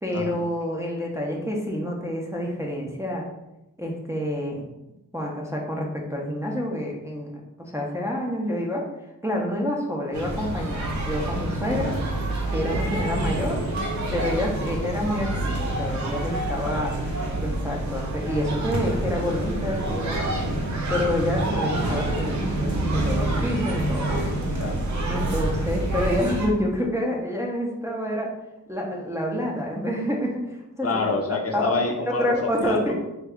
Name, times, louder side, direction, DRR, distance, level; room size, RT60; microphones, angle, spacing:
voice 1, 0.0-3.2 3.8-4.7 5.1-7.3 7.6-8.8 9.2-11.9 12.5-13.6 14.1-17.0 17.3-20.3 20.9-24.2 25.1-28.3 28.7-30.9 31.5-31.8 32.2-32.9, equal, 10° right, -2 dB, 0.4 m, -28 dB
sound 1, 10.1-26.5, right 1 dB, 60° right, 0.7 m, -27 dB
voice 2, 30.8-32.9, left 3 dB, 45° left, 1 dB, 0.5 m, -27 dB
3.4 x 2.1 x 3.5 m, 0.93 s
wide cardioid pair, 120°, 34 cm